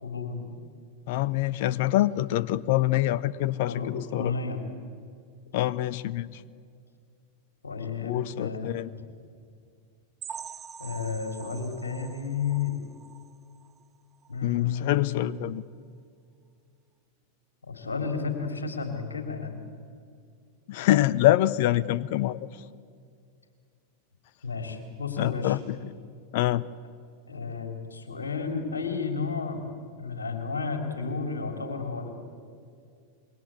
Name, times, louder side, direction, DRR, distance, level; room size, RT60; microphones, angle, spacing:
voice 1, 0.0-0.5 3.7-4.6 7.6-8.7 10.8-12.8 14.3-15.2 17.6-19.7 24.4-25.6 27.3-32.1, left 5 dB, 75° left, 6 dB, 3.4 m, -32 dB
voice 2, 1.1-4.3 5.5-6.4 8.0-8.9 14.4-15.6 20.7-22.5 25.2-25.9 26.3-26.6, left 15 dB, 50° left, 20 dB, 0.8 m, -25 dB
sound 1, 10.2-13.8 14.2-14.4 14.7-14.8 15.3-15.4, right 7 dB, 25° right, 0.8 m, -44 dB
27.0 x 22.5 x 8.4 m, 2.3 s
figure-of-eight pair, 90°, 0 cm